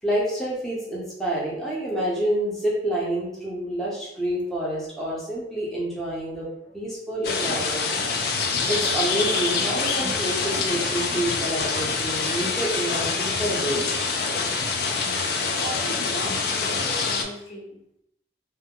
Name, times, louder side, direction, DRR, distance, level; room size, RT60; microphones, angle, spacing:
voice 1, 0.0-6.5 6.7-7.9 8.7-13.8, right 1 dB, ahead, -7 dB, 0.6 m, -28 dB
sound 1, 7.2-17.2, left 4 dB, 55° left, 0.3 m, -25 dB
voice 2, 15.6-18.0, right 1 dB, 80° left, -4 dB, 0.9 m, -38 dB
2.2 x 2.0 x 3.5 m, 0.77 s
head